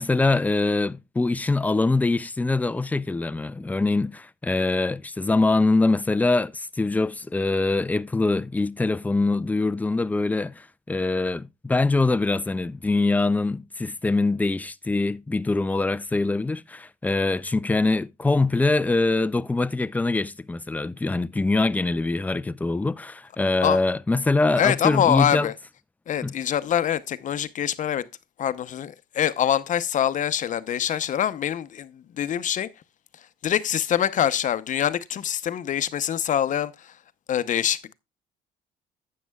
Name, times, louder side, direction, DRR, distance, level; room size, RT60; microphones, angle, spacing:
voice 1, 0.0-25.5 26.2-26.3, left 3 dB, 10° left, 0.4 m, -23 dB
voice 2, 24.6-25.5 26.1-28.1 28.4-32.7 33.4-36.9 37.3-37.9, left 10 dB, 50° left, 0.7 m, -24 dB
12.0 x 8.5 x 2.3 m
cardioid pair, 110°, 17 cm